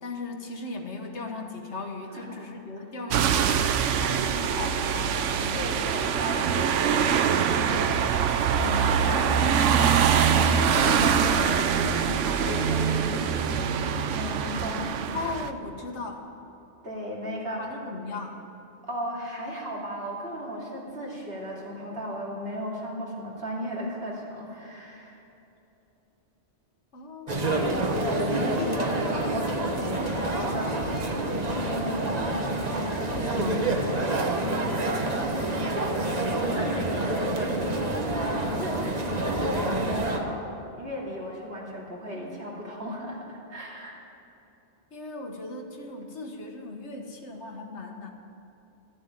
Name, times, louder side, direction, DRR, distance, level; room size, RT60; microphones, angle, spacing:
voice 1, 0.0-3.4 4.0-5.9 7.7-10.0 14.5-14.6 15.1-16.3 17.6-18.4 26.9-27.8 28.3-29.2 35.1-35.8 36.4-37.5 44.9-48.1, left 3 dB, 70° left, 3 dB, 1.6 m, -37 dB
voice 2, 2.1-2.5 5.5-7.2 9.0-9.1 10.3-13.2 14.1-14.9 16.8-17.7 18.8-25.2 28.0-28.8 29.3-34.1 36.2-36.7 38.0-40.5 40.8-44.0, equal, 55° right, -4 dB, 2.9 m, -35 dB
sound 1, 3.1-15.5, right 7 dB, 85° right, 1.0 m, -24 dB
sound 2, 27.3-40.2, right 2 dB, 35° right, 1.1 m, -27 dB
13.5 x 7.6 x 9.1 m, 2.9 s
omnidirectional pair, 1.2 m